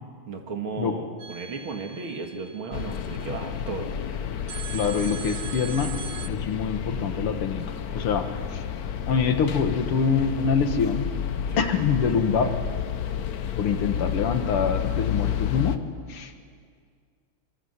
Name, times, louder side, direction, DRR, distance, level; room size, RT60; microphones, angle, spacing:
voice 1, 0.3-3.9 11.5-11.7, right 4 dB, 70° right, 3 dB, 2.8 m, -34 dB
sound 1, 1.2-3.4 4.5-6.3, right 7 dB, 55° right, 1.2 m, -40 dB
sound 2, 2.7-15.8, left 8 dB, 55° left, 1.2 m, -31 dB
voice 2, 4.7-5.9 6.3-8.7 9.1-11.1 11.6-12.5 13.6-15.8 16.1-16.3, left 6 dB, 90° left, 7 dB, 2.4 m, -25 dB
24.0 x 23.5 x 8.1 m, 2.1 s
omnidirectional pair, 2.4 m